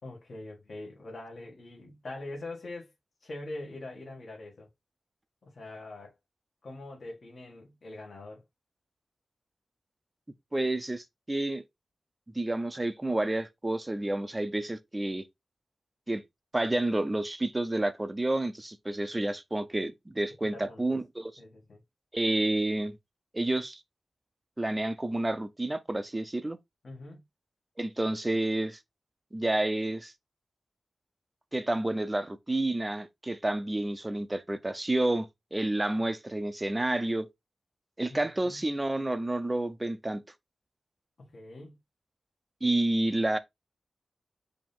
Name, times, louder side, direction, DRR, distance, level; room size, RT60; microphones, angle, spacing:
voice 1, 0.0-2.9 3.2-4.7 5.4-6.1 6.6-8.4 20.4-21.0 21.4-21.8 26.8-27.2 38.1-38.7 41.2-41.7, left 2 dB, 55° left, 1.7 m, -43 dB
voice 2, 10.5-11.6 12.3-15.2 16.1-16.2 16.5-21.3 22.1-23.0 23.3-23.8 24.6-26.6 27.8-28.8 29.3-30.1 31.5-37.3 38.0-40.2 42.6-43.4, right 1 dB, 20° right, 0.6 m, -29 dB
5.0 x 2.9 x 3.6 m
wide cardioid pair, 110°, 0 cm